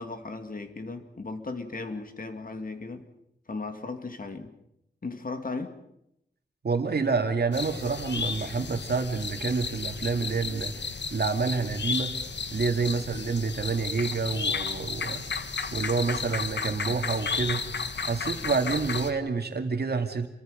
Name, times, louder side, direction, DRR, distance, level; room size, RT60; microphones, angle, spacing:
voice 1, 0.0-3.1 3.5-4.5 5.0-5.8 12.9-13.0, left 3 dB, 55° left, 7 dB, 2.5 m, -36 dB
voice 2, 6.6-12.1 12.5-15.3 15.7-17.6 18.0-20.3, right 4 dB, 65° right, 5 dB, 2.3 m, -28 dB
sound 1, 7.5-19.1, left 5 dB, 90° left, 1.6 m, -33 dB
28.0 x 24.0 x 5.2 m, 0.79 s
wide cardioid pair, 90°, 18 cm